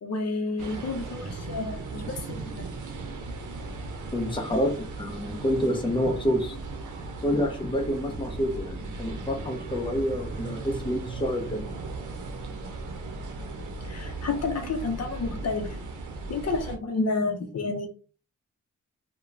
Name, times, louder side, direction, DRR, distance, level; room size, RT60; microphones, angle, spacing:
voice 1, 0.0-2.7 13.8-15.8 16.3-17.9, left 3 dB, 55° left, 4 dB, 0.7 m, -30 dB
sound 1, 0.6-16.8, right 3 dB, 75° right, 0.6 m, -37 dB
voice 2, 4.1-6.6 7.2-11.7, equal, 15° left, 2 dB, 0.7 m, -28 dB
2.9 x 2.2 x 2.5 m, 0.35 s
cardioid pair, 80°, 30 cm